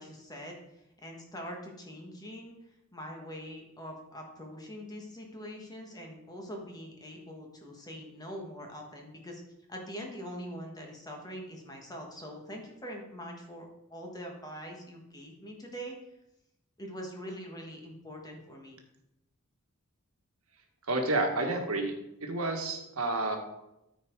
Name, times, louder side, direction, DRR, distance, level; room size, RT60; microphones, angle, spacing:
voice 1, 0.0-2.6 2.9-9.4 9.7-16.0 16.8-18.8, equal, 20° left, 1 dB, 1.6 m, -43 dB
voice 2, 20.9-21.9 22.2-23.4, right 2 dB, 80° right, 3 dB, 1.5 m, -30 dB
13.5 x 4.6 x 4.6 m, 0.88 s
head